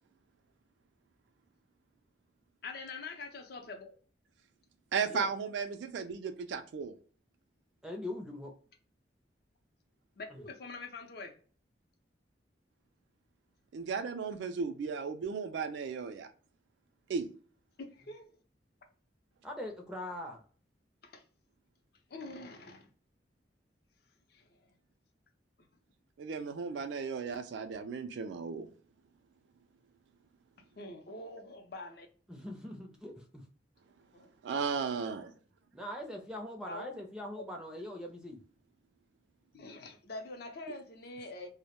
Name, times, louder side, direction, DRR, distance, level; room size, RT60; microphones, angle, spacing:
voice 1, 2.6-3.9 10.2-11.3 17.8-18.3 21.0-21.2 22.1-22.9 24.3-24.5 30.8-32.1 34.1-34.3 36.6-36.9 37.3-37.4 39.5-41.5, left 3 dB, 55° left, 0.5 m, -44 dB
voice 2, 4.9-6.9 13.7-16.3 17.1-17.3 26.2-28.7 34.4-35.3, right 5 dB, 75° right, 0.3 m, -35 dB
voice 3, 7.8-8.5 10.3-10.4 19.4-20.4 32.3-33.4 35.7-38.4, left 1 dB, 5° right, 0.4 m, -42 dB
2.1 x 2.0 x 2.9 m
head